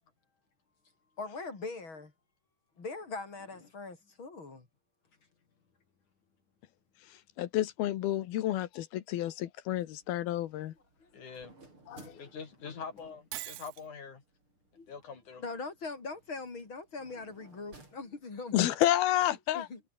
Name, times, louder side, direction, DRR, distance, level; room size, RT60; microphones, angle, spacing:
voice 1, 1.2-2.1 2.8-4.7 11.0-11.3 12.0-12.2 14.8-14.9 15.4-18.7 19.5-19.8, left 3 dB, 30° left, 4.5 m, -41 dB
voice 2, 7.4-10.7 11.9-12.1 18.5-19.7, left 13 dB, 80° left, 3.2 m, -30 dB
sound 1, 9.8-18.7, right 2 dB, 30° right, 8.5 m, -60 dB
voice 3, 11.1-11.5 12.2-14.2 14.9-15.4, left 5 dB, 55° left, 4.6 m, -44 dB
Shatter, 13.3-13.9, right 17 dB, 85° right, 2.9 m, -41 dB
omnidirectional pair, 4.4 m